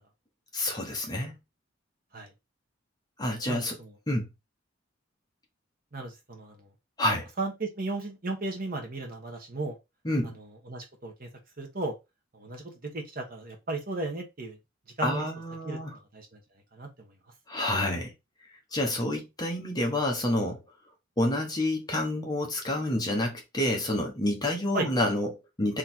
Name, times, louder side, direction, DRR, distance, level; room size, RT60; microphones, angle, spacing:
voice 1, 0.5-1.4 3.2-3.8 4.1-4.3 7.0-7.3 10.0-10.3 15.0-16.0 17.5-18.1 18.7-20.6 21.2-25.8, left 1 dB, 20° left, 1.2 m, -28 dB
voice 2, 3.5-3.9 5.9-6.7 7.4-9.8 10.7-11.3 11.6-11.9 12.3-14.6 15.0-15.3 15.6-15.8 16.1-16.4 16.7-17.1 24.7-24.9, right 2 dB, 50° right, 1.3 m, -35 dB
3.8 x 3.2 x 4.4 m
head